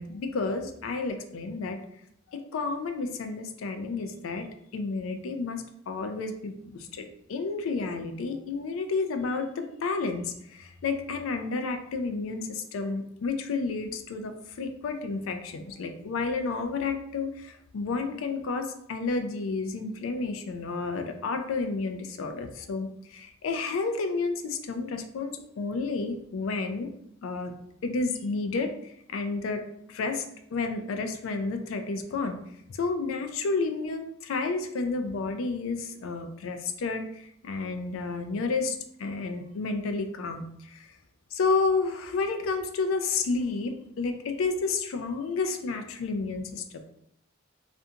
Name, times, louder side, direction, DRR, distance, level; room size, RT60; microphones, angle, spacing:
voice 1, 0.0-1.8 2.3-4.5 4.7-26.9 27.2-27.5 27.8-29.6 29.9-30.2 30.5-32.4 32.7-40.9 41.3-46.8, left 4 dB, 70° left, 7 dB, 0.3 m, -31 dB
2.5 x 2.2 x 2.7 m, 0.73 s
head